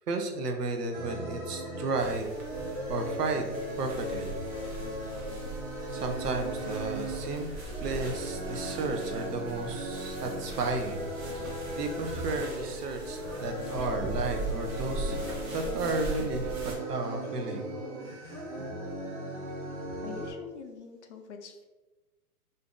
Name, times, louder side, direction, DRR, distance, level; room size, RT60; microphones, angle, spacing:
voice 1, 0.1-2.3 2.9-3.5 3.8-4.3 5.9-7.5 7.8-11.0 11.3-11.5 11.7-15.2 15.5-17.7, right 3 dB, 90° right, 5 dB, 0.7 m, -33 dB
sound 1, 0.9-20.3, equal, 25° right, 0.5 m, -37 dB
sound 2, 2.0-16.7, right 2 dB, 65° right, 1.0 m, -40 dB
voice 2, 20.0-21.7, left 6 dB, 50° left, 4 dB, 0.5 m, -44 dB
2.7 x 2.5 x 3.5 m, 1.2 s
hypercardioid pair, 150°, 46 cm